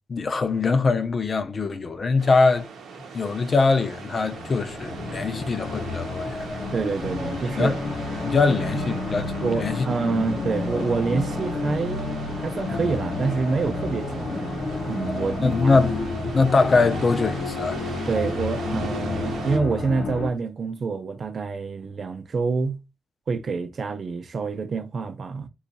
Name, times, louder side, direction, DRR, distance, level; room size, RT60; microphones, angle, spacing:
voice 1, 0.1-2.7 3.1-6.4 7.6-7.8 8.2-9.2 9.6-9.9 10.1-10.2 15.4-16.0 16.3-17.8, left 4 dB, 40° left, 0.5 m, -22 dB
sound 1, 2.2-19.6, right 5 dB, 90° right, 0.7 m, -39 dB
sound 2, 4.1-20.3, left 3 dB, 70° left, 0.8 m, -30 dB
voice 2, 6.7-7.8 8.9-9.0 9.4-12.0 12.4-15.8 18.1-22.8 23.3-25.5, right 4 dB, 45° right, 0.5 m, -27 dB
3.0 x 2.4 x 3.9 m
cardioid pair, 120°, 0 cm